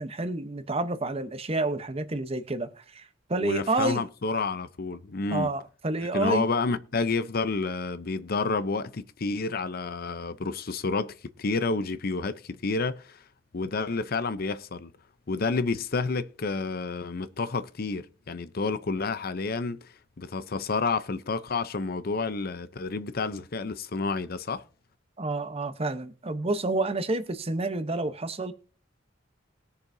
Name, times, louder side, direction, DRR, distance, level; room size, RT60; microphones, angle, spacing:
voice 1, 0.0-4.0 5.3-6.4 25.2-28.5, right 2 dB, 30° right, 0.9 m, -29 dB
voice 2, 3.4-5.5 6.1-13.2 13.5-14.9 15.3-24.6, left 4 dB, 55° left, 0.6 m, -30 dB
20.5 x 6.9 x 2.7 m
head